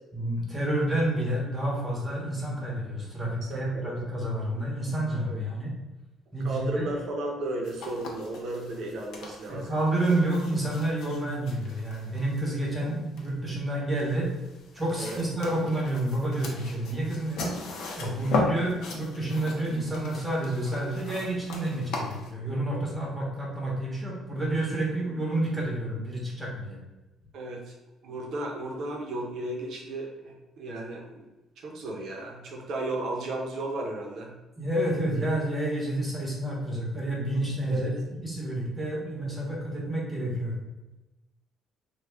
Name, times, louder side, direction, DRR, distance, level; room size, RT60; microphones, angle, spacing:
voice 1, 0.1-5.7 6.3-6.9 9.5-14.3 14.7-17.6 17.9-26.8 34.6-40.6, right 1 dB, 15° right, -3 dB, 0.9 m, -29 dB
voice 2, 3.5-3.9 5.2-5.4 6.4-9.8 10.1-10.2 15.0-15.2 27.3-27.7 28.0-31.2 31.6-34.3 36.2-36.3 37.7-37.9, right 2 dB, 60° right, 1 dB, 0.7 m, -34 dB
sound 1, 7.6-22.3, left 3 dB, 70° left, 0.7 m, -38 dB
3.3 x 2.3 x 3.4 m, 1.1 s
cardioid pair, 145°, 0 cm